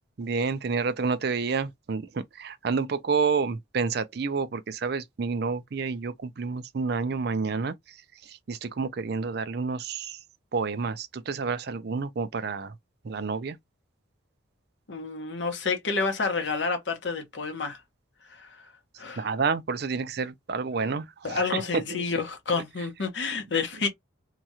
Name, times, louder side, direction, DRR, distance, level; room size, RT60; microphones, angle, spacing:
voice 1, 0.2-7.7 8.3-10.2 10.5-12.7 13.0-13.6 19.2-22.0, right 4 dB, 55° right, 0.5 m, -29 dB
voice 2, 14.9-17.8 18.3-18.7 19.0-19.3 21.2-23.9, left 4 dB, 65° left, 1.0 m, -29 dB
2.9 x 2.4 x 2.7 m
head